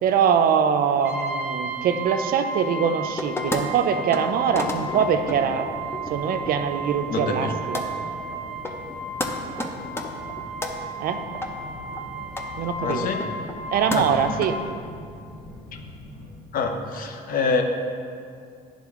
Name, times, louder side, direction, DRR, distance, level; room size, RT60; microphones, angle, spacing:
voice 1, 0.0-5.7 6.1-7.9 11.0-11.2 12.6-13.1 13.7-14.6, right 7 dB, 60° right, 7 dB, 0.5 m, -23 dB
Brass instrument, 1.0-14.7, right 2 dB, 5° right, 1.0 m, -34 dB
sound 1, 3.2-3.6 4.0-4.3 4.5-6.5 6.9-7.5 7.7-7.9 8.3-8.4 8.6-8.9 9.2-9.3 9.6-10.7 11.3-11.5 11.9-12.0 12.3-12.4 12.9-13.6 13.9-14.5, left 1 dB, 15° left, 0.6 m, -31 dB
Fixed-wing aircraft airplane, 4.3-16.3, left 1 dB, 75° left, 1.8 m, -42 dB
voice 2, 7.1-7.5 12.8-13.3 13.9-14.1 16.5-17.6, left 4 dB, 55° left, 4 dB, 0.8 m, -26 dB
10.5 x 3.7 x 3.6 m, 2.3 s
cardioid pair, 110°, 17 cm